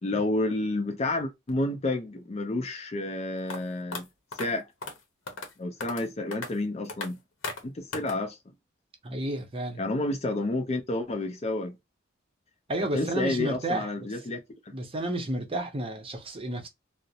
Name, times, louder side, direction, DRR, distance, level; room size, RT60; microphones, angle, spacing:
voice 1, 0.0-4.1 4.3-4.6 5.6-7.2 7.6-8.4 9.8-11.8 12.9-14.4 14.7-14.8, left 2 dB, 35° left, 0.5 m, -30 dB
sound 1, 3.5-3.6 3.9-4.0 4.3-4.5 4.8-5.0 5.3-5.5 5.8-6.1 6.3-6.5 6.9-7.1 7.4-7.6 7.9-8.2, left 3 dB, 85° left, 0.7 m, -35 dB
voice 2, 9.0-9.8 12.7-14.1 14.7-16.7, right 1 dB, 30° right, 0.6 m, -31 dB
2.4 x 2.0 x 2.7 m
head